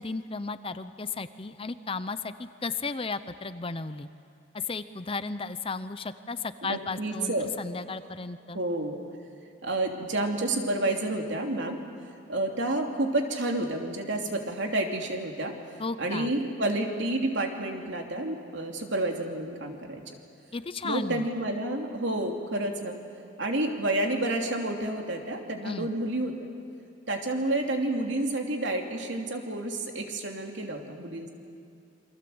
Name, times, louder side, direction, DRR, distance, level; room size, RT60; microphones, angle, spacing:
voice 1, 0.0-4.1 4.5-8.6 15.8-16.3 20.5-21.3 25.6-25.9, left 4 dB, 30° left, 12 dB, 0.7 m, -34 dB
voice 2, 6.6-7.5 8.5-9.0 9.6-11.8 12.3-15.5 16.0-20.0 20.8-23.0 23.4-26.5 27.1-31.3, right 1 dB, 65° right, 2 dB, 2.9 m, -29 dB
28.5 x 24.0 x 7.9 m, 2.5 s
head